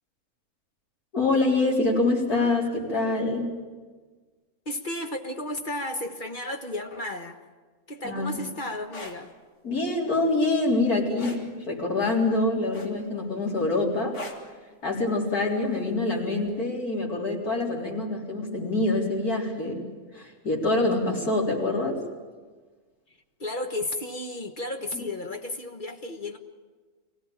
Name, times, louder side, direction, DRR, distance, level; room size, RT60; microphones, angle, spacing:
voice 1, 1.1-3.5 8.0-8.4 9.6-14.2 14.8-19.8 20.1-22.0, left 2 dB, 90° left, -3 dB, 4.6 m, -25 dB
voice 2, 4.6-7.4 7.9-9.3 23.4-26.4, left 1 dB, 35° left, 5 dB, 1.6 m, -33 dB
sound 1, 8.8-9.2 11.2-11.5 12.7-13.2 14.1-14.5 15.9-16.1, left 2 dB, 50° left, 2.6 m, -39 dB
24.0 x 17.0 x 9.0 m, 1.4 s
omnidirectional pair, 1.5 m